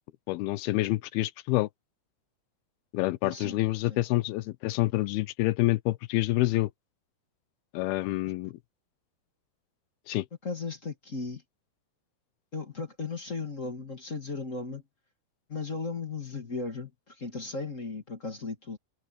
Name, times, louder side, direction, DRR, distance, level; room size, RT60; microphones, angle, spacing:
voice 1, 0.3-1.7 2.9-6.7 7.7-8.6 10.1-10.3, left 18 dB, 80° left, 2.5 m, -27 dB
voice 2, 3.2-3.6 3.9-4.0 10.4-11.4 12.5-14.8 15.5-18.8, left 4 dB, 30° left, 1.5 m, -36 dB
omnidirectional pair, 4.7 m